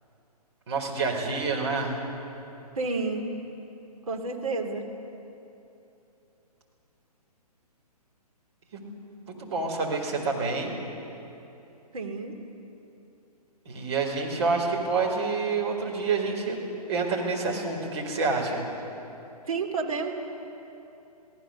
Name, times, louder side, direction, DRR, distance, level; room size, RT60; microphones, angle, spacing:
voice 1, 0.7-2.0 8.7-9.0 9.3-10.7 13.6-16.6 16.9-18.7, right 4 dB, 45° right, 0 dB, 4.6 m, -28 dB
voice 2, 2.8-3.3 4.1-4.9 11.9-12.3 19.5-20.1, right 4 dB, 60° right, 2 dB, 3.1 m, -30 dB
28.5 x 17.5 x 6.9 m, 2.9 s
figure-of-eight pair, 130°, 21 cm